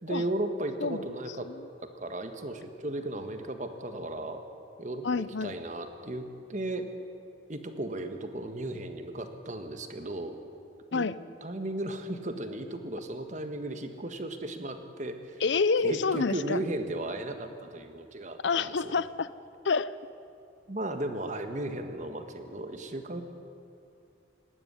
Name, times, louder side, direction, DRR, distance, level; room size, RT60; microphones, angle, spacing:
voice 1, 0.0-1.5 1.8-4.4 4.8-5.1 5.4-6.9 7.5-10.4 10.9-11.1 11.4-15.4 15.8-18.9 20.7-23.2, right 1 dB, 40° right, 7 dB, 1.5 m, -35 dB
voice 2, 5.0-5.6 10.9-11.2 15.4-16.6 18.4-19.3 19.6-19.9, left 4 dB, 75° left, 17 dB, 0.6 m, -28 dB
19.0 x 16.5 x 9.9 m, 2.6 s
head